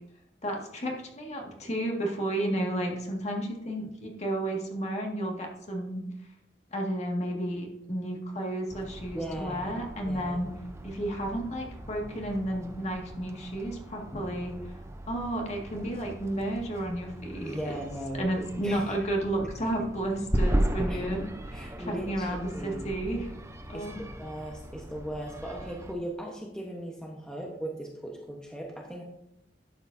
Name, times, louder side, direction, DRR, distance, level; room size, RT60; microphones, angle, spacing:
voice 1, 0.4-6.0 6.7-10.5 10.8-14.8 15.1-17.8 18.2-23.3 23.7-24.0, right 1 dB, 40° left, 0 dB, 1.9 m, -32 dB
sound 1, 8.7-25.9, right 1 dB, 15° right, 0.7 m, -37 dB
voice 2, 9.1-10.5 17.4-18.2 18.6-18.9 19.6-19.7 20.9-21.0 21.5-22.9 23.7-23.8 24.2-29.0, right 1 dB, 5° left, -1 dB, 1.1 m, -38 dB
11.5 x 7.9 x 2.7 m, 0.83 s
head